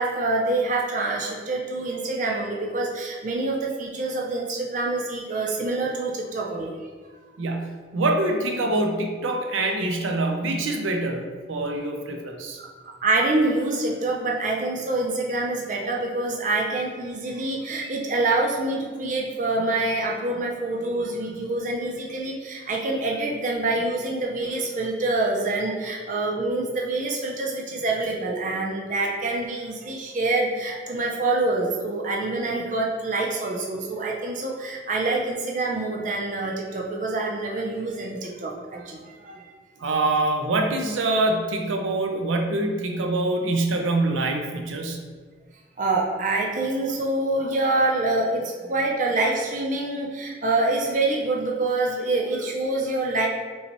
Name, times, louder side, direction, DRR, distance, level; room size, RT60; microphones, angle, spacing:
voice 1, 0.0-6.8 12.6-39.5 45.8-53.3, right 2 dB, 40° right, -1 dB, 0.5 m, -26 dB
voice 2, 7.4-12.6 39.8-45.0, right 2 dB, 85° right, 3 dB, 0.6 m, -25 dB
5.3 x 3.2 x 2.9 m, 1.5 s
head